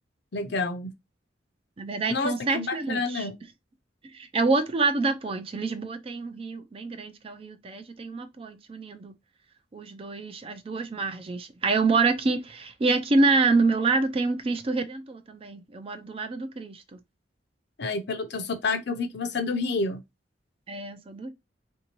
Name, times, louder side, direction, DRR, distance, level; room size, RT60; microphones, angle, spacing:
voice 1, 0.3-0.9 2.1-3.3 17.8-20.0, left 3 dB, 60° left, 0.6 m, -29 dB
voice 2, 1.8-3.3 4.0-9.1 9.7-16.8 20.7-21.3, right 3 dB, 30° right, 0.4 m, -27 dB
3.6 x 2.7 x 2.9 m
head